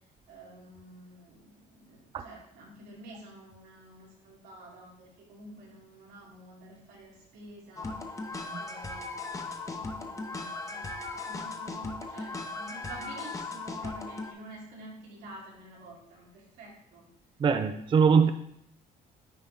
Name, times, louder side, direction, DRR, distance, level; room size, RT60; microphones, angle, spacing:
voice 1, 0.3-8.0 8.5-17.1 18.2-18.3, right 1 dB, 85° right, -4 dB, 2.9 m, -49 dB
sound 1, 7.8-14.3, left 3 dB, 20° left, 0.8 m, -37 dB
voice 2, 17.4-18.3, right 6 dB, 30° right, 9 dB, 0.4 m, -22 dB
9.3 x 4.2 x 3.6 m, 0.70 s
cardioid pair, 110°, 17 cm